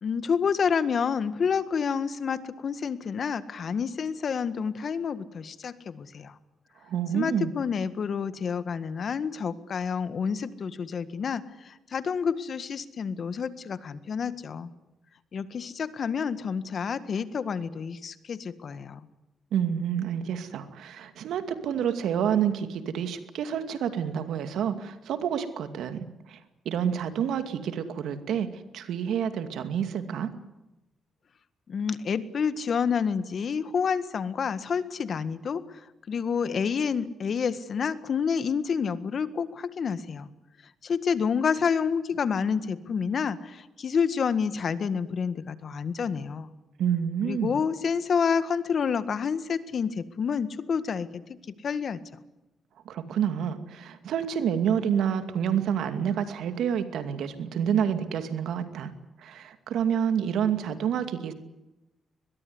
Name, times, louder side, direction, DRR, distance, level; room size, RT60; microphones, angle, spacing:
voice 1, 0.0-6.4 7.1-14.7 15.3-19.0 31.7-35.8 36.1-40.3 40.8-46.5 47.2-51.2 51.6-52.0, left 6 dB, 60° left, 13 dB, 1.7 m, -29 dB
voice 2, 6.9-7.5 19.5-26.4 26.7-28.5 28.7-30.3 46.8-47.6 52.9-58.9 59.2-61.3, right 8 dB, 80° right, 9 dB, 2.4 m, -28 dB
22.5 x 21.5 x 9.7 m, 1.0 s
cardioid pair, 70°, 0 cm